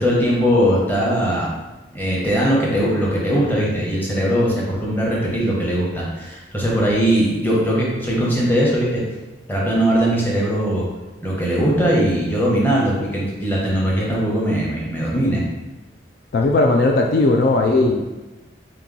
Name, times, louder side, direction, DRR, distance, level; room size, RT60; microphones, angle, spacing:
voice 1, 0.0-1.5 1.9-9.0 9.5-10.9 11.2-15.4, equal, 10° left, -5 dB, 0.9 m, -20 dB
voice 2, 16.3-18.1, left 2 dB, 55° left, 2 dB, 0.3 m, -17 dB
3.7 x 2.9 x 3.7 m, 1.1 s
head